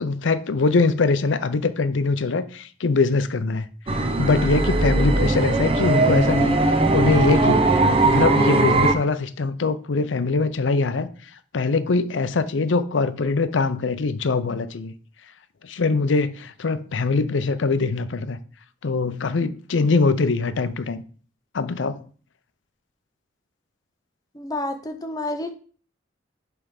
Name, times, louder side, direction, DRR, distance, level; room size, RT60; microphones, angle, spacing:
voice 1, 0.0-11.1 11.5-14.9 15.6-18.4 18.8-21.0 21.5-22.0, left 4 dB, 80° left, 0.5 m, -23 dB
sound 1, 3.9-8.9, right 2 dB, 30° right, 0.7 m, -19 dB
voice 2, 24.3-25.6, left 2 dB, 20° left, 0.6 m, -29 dB
7.1 x 3.5 x 5.2 m
head